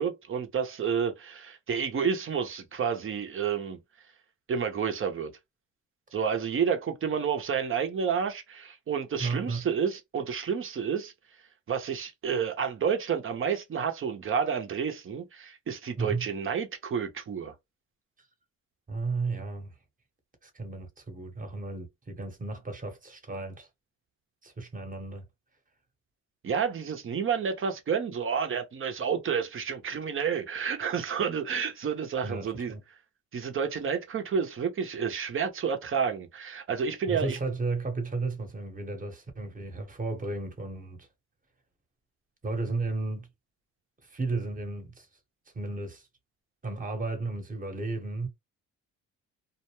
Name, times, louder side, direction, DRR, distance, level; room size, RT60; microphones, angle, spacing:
voice 1, 0.0-3.8 4.5-5.3 6.1-11.1 11.7-17.5 26.4-32.7 33.3-37.4, right 7 dB, 45° right, 0.8 m, -30 dB
voice 2, 9.2-9.7 16.0-16.3 18.9-19.7 20.4-23.7 24.4-25.3 32.2-32.8 37.1-41.1 42.4-43.3 44.0-45.1 45.5-46.1 46.6-48.3, right 3 dB, 25° right, 1.1 m, -34 dB
2.5 x 2.2 x 3.0 m
cardioid pair, 90°, 30 cm